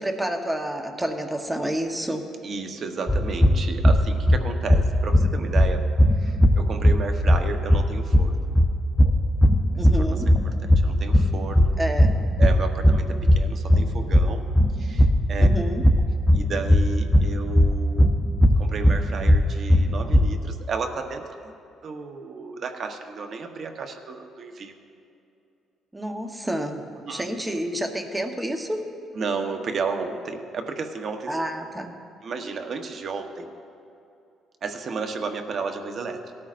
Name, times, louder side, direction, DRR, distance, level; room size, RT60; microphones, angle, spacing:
voice 1, 0.0-2.2 9.7-10.3 11.8-12.2 15.4-15.8 25.9-26.8 27.1-28.8 31.3-32.0, right 1 dB, 10° right, 4 dB, 1.0 m, -29 dB
voice 2, 2.4-5.8 6.2-8.5 9.8-11.8 12.4-14.5 14.8-15.5 16.3-18.1 18.6-21.5 21.8-24.8 27.0-27.2 29.1-31.4 32.2-33.5 34.6-36.3, right 4 dB, 50° right, 6 dB, 1.0 m, -33 dB
sound 1, 3.1-20.4, equal, 10° left, 0.6 m, -19 dB
17.5 x 13.0 x 2.5 m, 2.6 s
cardioid pair, 115°, 0 cm